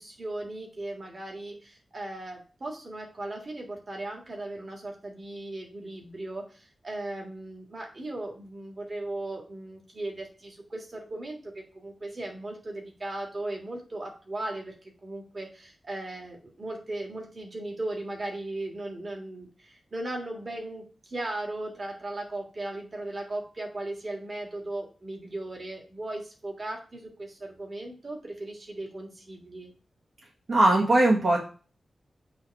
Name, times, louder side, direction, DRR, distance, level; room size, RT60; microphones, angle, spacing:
voice 1, 0.0-29.7, right 2 dB, 35° right, 0 dB, 1.8 m, -37 dB
voice 2, 30.5-31.4, right 2 dB, 60° right, -3 dB, 1.4 m, -20 dB
7.7 x 3.1 x 4.7 m, 0.37 s
wide cardioid pair, 160°, 0 cm